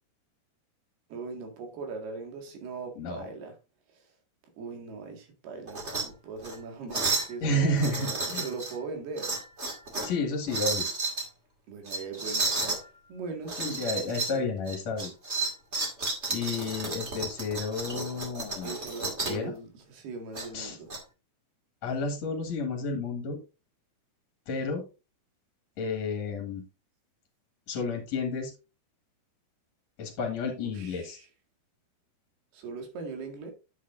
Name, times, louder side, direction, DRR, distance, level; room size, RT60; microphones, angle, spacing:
voice 1, 1.1-3.6 3.9-4.1 4.6-9.3 11.7-12.7 13.1-14.7 18.6-20.9 30.4-31.3 32.5-33.5, right 4 dB, 75° right, 3.9 m, -40 dB
voice 2, 3.0-3.3 7.4-8.4 10.0-10.9 13.6-15.1 16.3-18.7 19.3-19.5 20.5-20.8 21.8-23.4 24.5-24.8 25.8-26.6 27.7-28.5 30.0-31.2, left 2 dB, 50° left, 2.4 m, -31 dB
sound 1, 5.7-6.0 6.4-6.6 6.9-7.3 7.8-8.7 9.2-10.1 10.5-11.3 11.9-12.8 13.5-14.4 14.7-19.4 20.3-21.0, right 3 dB, 30° right, 1.4 m, -32 dB
10.0 x 8.0 x 2.6 m
omnidirectional pair, 4.6 m